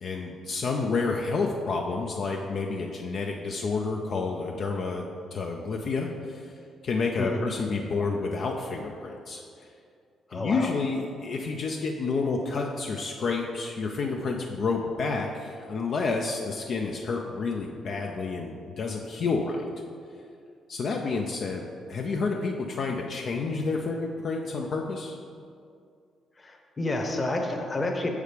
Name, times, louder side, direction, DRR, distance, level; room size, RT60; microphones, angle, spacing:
voice 1, 0.0-5.0 5.3-6.5 6.8-9.4 10.3-19.7 20.7-25.2, left 4 dB, 55° left, 1 dB, 0.5 m, -29 dB
voice 2, 7.2-7.5 10.3-10.7 26.4-28.1, left 2 dB, 25° left, 3 dB, 1.0 m, -29 dB
6.6 x 4.9 x 5.0 m, 2.3 s
cardioid pair, 90°, 0 cm